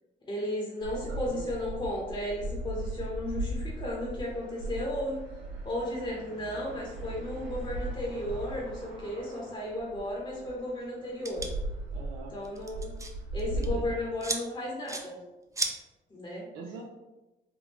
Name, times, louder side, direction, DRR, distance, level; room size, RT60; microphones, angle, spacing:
voice 1, 0.2-5.2 5.6-11.5 12.3-12.9 13.3-15.2 16.1-16.6, left 1 dB, 25° left, -3 dB, 0.8 m, -34 dB
sound 1, 0.8-14.0, right 1 dB, 70° right, 1.2 m, -38 dB
voice 2, 0.9-1.6 11.9-12.3 13.5-13.8 16.5-16.8, right 5 dB, 90° right, 0 dB, 0.5 m, -43 dB
sound 2, 11.2-11.5 12.4-13.1 13.4-13.7 14.2-14.4 14.9-15.0 15.6-15.7, right 3 dB, 15° right, 0.4 m, -32 dB
3.5 x 2.4 x 3.0 m, 1.1 s
cardioid pair, 90°, 20 cm